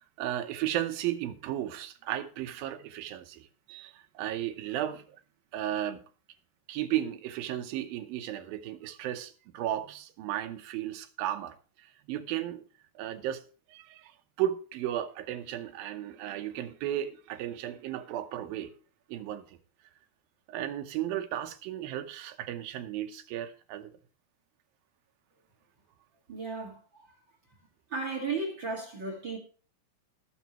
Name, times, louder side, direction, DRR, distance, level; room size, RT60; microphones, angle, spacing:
voice 1, 0.2-5.0 5.5-6.0 6.7-11.6 12.1-12.6 13.0-13.4 13.7-14.1 14.4-18.7 19.1-19.6 20.5-23.9, right 12 dB, 80° right, 2.6 m, -34 dB
voice 2, 26.3-27.1 27.9-29.4, right 3 dB, 40° right, 2.3 m, -35 dB
19.5 x 7.0 x 3.1 m
omnidirectional pair, 4.2 m